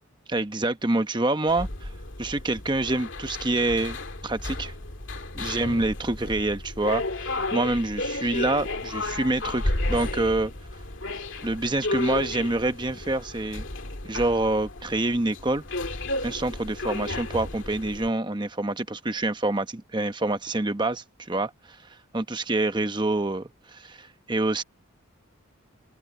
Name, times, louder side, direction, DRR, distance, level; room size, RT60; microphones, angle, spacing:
voice 1, 0.3-1.9 2.2-4.0 4.2-4.7 5.3-10.5 11.4-13.6 14.0-15.6 16.2-21.5 22.1-24.6, right 2 dB, 20° right, 0.9 m, -26 dB
sound 1, 1.5-18.1, left 2 dB, 65° left, 2.2 m, -33 dB
open air
head